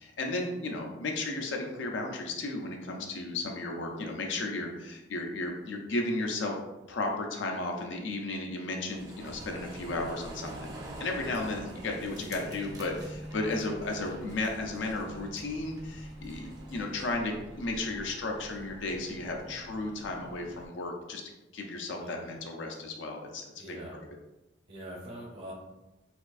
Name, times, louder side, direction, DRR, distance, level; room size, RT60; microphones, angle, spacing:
voice 1, 0.0-6.6 6.9-10.7 11.0-21.2 21.5-23.4, left 2 dB, 80° left, 2 dB, 0.5 m, -34 dB
sound 1, 8.9-17.1, right 2 dB, 20° right, 0.4 m, -48 dB
sound 2, 9.2-20.7, equal, 80° right, 1.4 m, -47 dB
voice 2, 9.8-10.7 22.0-22.3 22.7-22.8 23.6-24.0 24.7-25.5, right 1 dB, 55° right, -4 dB, 0.8 m, -45 dB
4.2 x 2.5 x 2.4 m, 1.0 s
head